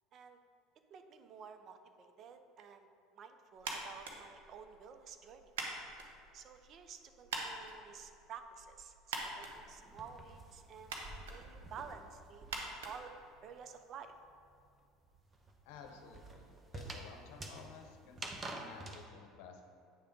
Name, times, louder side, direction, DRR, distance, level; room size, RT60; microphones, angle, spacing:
voice 1, 0.9-2.9 3.1-5.5 6.3-12.5 12.8-13.1 13.4-14.1, right 6 dB, 50° right, 8 dB, 0.6 m, -52 dB
sound 1, 3.6-13.8, right 3 dB, 85° right, 0.9 m, -46 dB
sound 2, 9.2-12.9 13.2-19.0, right 2 dB, 25° right, 0.9 m, -49 dB
voice 2, 15.6-19.6, left 6 dB, 75° left, 4 dB, 0.8 m, -54 dB
8.7 x 3.4 x 5.2 m, 2.5 s
supercardioid pair, 90°, 0 cm